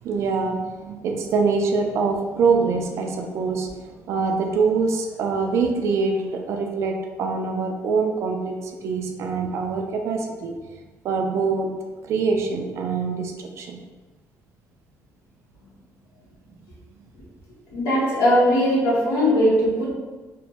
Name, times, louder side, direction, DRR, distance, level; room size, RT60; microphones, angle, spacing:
voice 1, 0.0-10.5 11.0-11.7 12.0-13.8, right 4 dB, 65° right, 2 dB, 0.3 m, -24 dB
voice 2, 17.7-19.9, equal, 80° left, -6 dB, 1.0 m, -19 dB
3.0 x 2.1 x 2.8 m, 1.3 s
cardioid pair, 125°, 5 cm